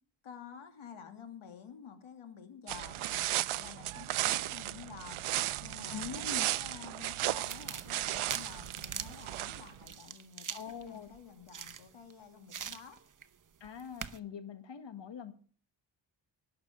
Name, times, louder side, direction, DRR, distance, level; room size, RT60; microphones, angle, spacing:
voice 1, 0.2-5.2 5.6-13.0, left 7 dB, 80° left, 2.6 m, -50 dB
sound 1, 2.7-9.8, right 15 dB, 90° right, 0.6 m, -35 dB
voice 2, 5.9-6.5 10.5-11.1 13.6-15.3, left 7 dB, 60° left, 1.9 m, -43 dB
sound 2, 7.4-12.1 12.5-13.3 13.6-14.2, right 7 dB, 40° right, 1.0 m, -44 dB
18.5 x 6.7 x 7.2 m
wide cardioid pair, 115°, 48 cm